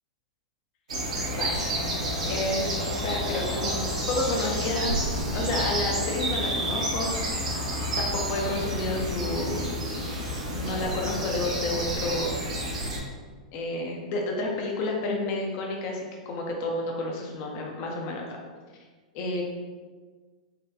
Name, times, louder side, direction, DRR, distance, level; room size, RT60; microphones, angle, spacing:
sound 1, 0.9-13.0, equal, 75° right, 1.2 m, -29 dB
voice 1, 2.3-2.8 3.0-5.0 5.3-7.4 8.0-12.4 13.5-18.3 19.1-19.4, left 2 dB, 45° left, 0 dB, 0.7 m, -30 dB
4.1 x 3.2 x 2.7 m, 1.4 s
hypercardioid pair, 100°, 4 cm